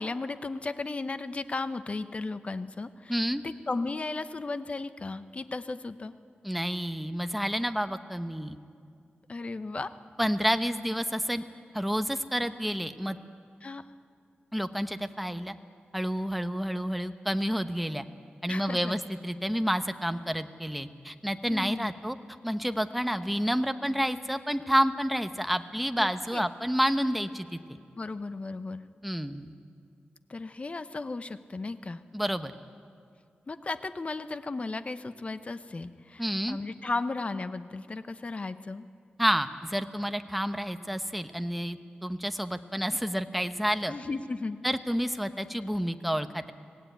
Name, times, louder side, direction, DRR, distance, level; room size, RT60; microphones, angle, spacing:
voice 1, 0.0-3.2 3.4-6.1 9.3-9.9 13.6-13.8 18.5-18.9 21.5-21.9 26.0-26.4 27.9-28.8 30.3-32.0 33.5-38.8 43.9-44.6, left 3 dB, 35° left, 11 dB, 0.9 m, -35 dB
voice 2, 3.1-3.4 6.4-8.6 10.2-11.4 11.7-13.2 14.5-15.5 15.9-18.0 18.4-22.2 22.4-27.6 29.0-29.5 32.1-32.5 36.2-36.6 39.2-43.9 44.6-46.5, equal, ahead, 9 dB, 1.0 m, -29 dB
24.5 x 17.5 x 9.3 m, 2.3 s
wide cardioid pair, 100°, 3 cm